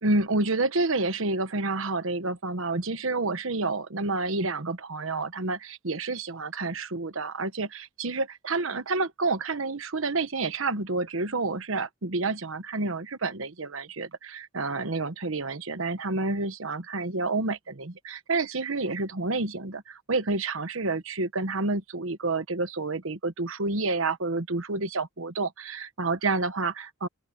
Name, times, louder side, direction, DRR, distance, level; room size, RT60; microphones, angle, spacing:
voice 1, 0.0-27.1, right 3 dB, 70° right, 1.2 m, -29 dB
open air
head